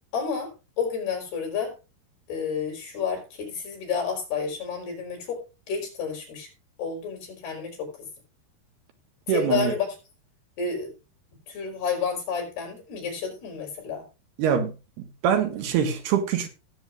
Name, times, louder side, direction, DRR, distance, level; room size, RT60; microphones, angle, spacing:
voice 1, 0.1-0.5 0.8-1.7 2.3-5.4 5.7-6.5 6.8-7.9 9.3-9.9 10.6-10.9 11.5-14.0, left 6 dB, 75° left, 6.8 m, -30 dB
voice 2, 9.3-9.7 14.4-14.7 15.2-16.5, right 8 dB, 80° right, 3.7 m, -23 dB
18.5 x 8.2 x 2.6 m
omnidirectional pair, 4.6 m